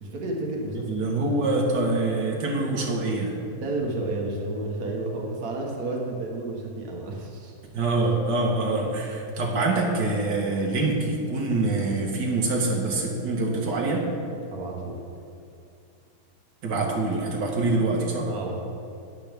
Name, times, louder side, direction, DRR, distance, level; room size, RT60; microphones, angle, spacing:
voice 1, 0.0-1.2 3.6-7.5 14.5-15.0 18.3-18.6, right 2 dB, 65° right, -1 dB, 1.8 m, -31 dB
voice 2, 0.9-3.4 7.7-14.1 16.6-18.3, right 2 dB, 85° right, -1 dB, 2.0 m, -25 dB
12.5 x 9.9 x 3.5 m, 2.5 s
omnidirectional pair, 1.8 m